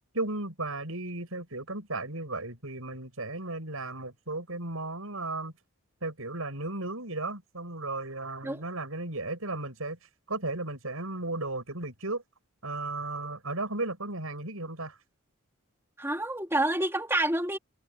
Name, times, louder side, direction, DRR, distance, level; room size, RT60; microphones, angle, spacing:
voice 1, 0.1-5.5 6.0-10.0 10.3-12.2 12.6-15.0, right 2 dB, 75° right, 6.3 m, -35 dB
voice 2, 16.0-17.6, right 1 dB, 10° right, 2.6 m, -28 dB
head